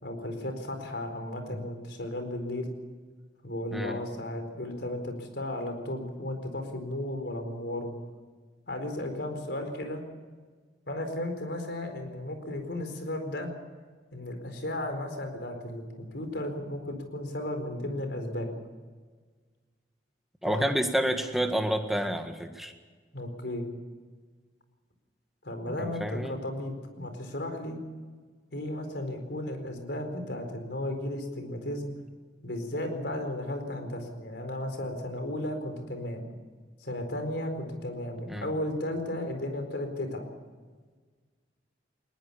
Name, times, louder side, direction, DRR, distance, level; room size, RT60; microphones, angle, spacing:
voice 1, 0.0-2.7 3.4-7.9 8.7-10.0 10.9-13.5 14.1-18.5 20.4-20.7 23.1-23.7 25.4-27.8 28.5-31.9 32.4-36.2 36.8-40.3, left 1 dB, 70° left, 6 dB, 4.4 m, -34 dB
voice 2, 20.4-22.7 25.8-26.4 38.3-38.5, equal, ahead, 5 dB, 1.7 m, -29 dB
20.5 x 19.5 x 7.1 m, 1.5 s
head